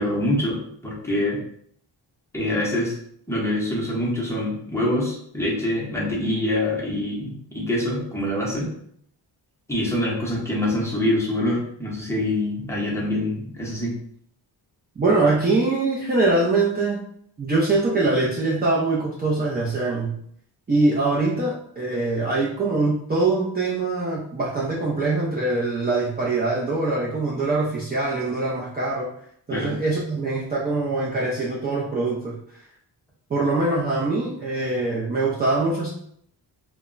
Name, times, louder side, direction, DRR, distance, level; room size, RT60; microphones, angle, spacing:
voice 1, 0.0-1.4 2.3-2.9 3.3-8.7 9.7-13.9 29.5-29.7, left 1 dB, 5° left, -5 dB, 0.7 m, -25 dB
voice 2, 15.0-17.0 17.4-20.2 20.7-29.1 29.5-32.4 33.3-35.9, right 3 dB, 25° right, -5 dB, 0.4 m, -23 dB
2.1 x 2.1 x 3.7 m, 0.67 s
wide cardioid pair, 120°, 44 cm